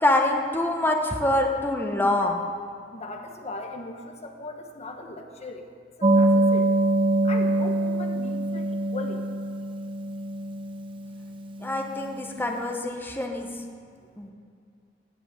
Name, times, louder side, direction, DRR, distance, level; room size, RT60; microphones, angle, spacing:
voice 1, 0.0-2.4 11.6-13.5 14.2-14.3, left 1 dB, 10° left, 2 dB, 1.1 m, -25 dB
voice 2, 2.9-5.7 6.0-6.8 7.2-9.3, left 2 dB, 35° left, 4 dB, 1.1 m, -39 dB
sound 1, 6.0-12.2, right 1 dB, 30° right, 0.8 m, -24 dB
18.0 x 6.1 x 8.9 m, 2.3 s
head